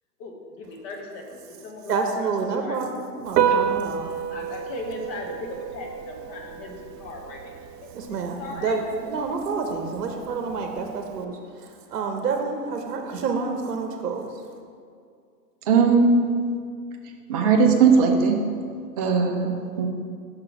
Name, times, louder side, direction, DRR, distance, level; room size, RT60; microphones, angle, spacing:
voice 1, 0.2-2.8 3.4-3.6 4.3-8.8, left 3 dB, 30° left, 1 dB, 1.0 m, -38 dB
voice 2, 1.9-4.2 7.9-14.4, right 4 dB, 70° right, 4 dB, 0.9 m, -29 dB
Piano, 3.3-11.2, right 8 dB, 90° right, 0.5 m, -30 dB
voice 3, 15.7-16.1 17.3-18.4 19.0-19.9, right 5 dB, 25° right, 2 dB, 0.4 m, -18 dB
5.7 x 3.8 x 6.0 m, 2.2 s
hypercardioid pair, 125°, 48 cm